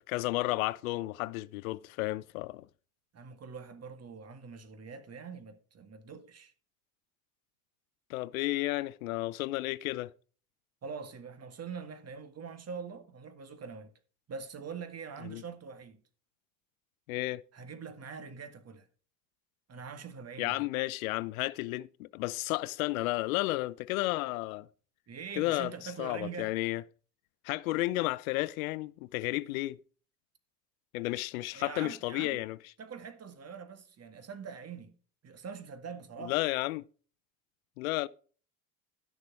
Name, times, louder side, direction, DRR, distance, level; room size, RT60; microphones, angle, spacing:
voice 1, 0.0-2.7 8.1-10.1 15.2-15.4 17.1-17.4 20.4-24.7 25.4-26.8 27.4-29.8 30.9-32.6 36.2-36.8 37.8-38.1, left 19 dB, 85° left, 0.6 m, -32 dB
voice 2, 3.1-6.5 10.8-13.9 14.3-16.0 17.5-18.9 19.7-20.6 25.1-26.5 31.5-32.4 32.8-34.9 35.2-36.4, right 6 dB, 35° right, 1.8 m, -44 dB
12.0 x 6.7 x 4.6 m
hypercardioid pair, 75°, 41 cm